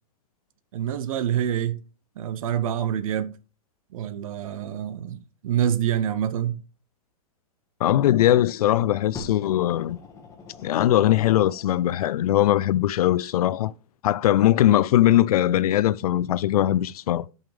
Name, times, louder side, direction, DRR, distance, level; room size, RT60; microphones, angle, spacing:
voice 1, 0.7-1.8 2.2-3.3 3.9-6.6, right 10 dB, 65° right, 0.7 m, -26 dB
voice 2, 7.8-10.0 10.6-13.7 14.0-17.3, left 13 dB, 85° left, 0.4 m, -20 dB
Fire, 9.1-12.0 12.8-12.9, left 4 dB, 15° left, 1.5 m, -43 dB
9.0 x 5.5 x 3.3 m
supercardioid pair, 155°, 19 cm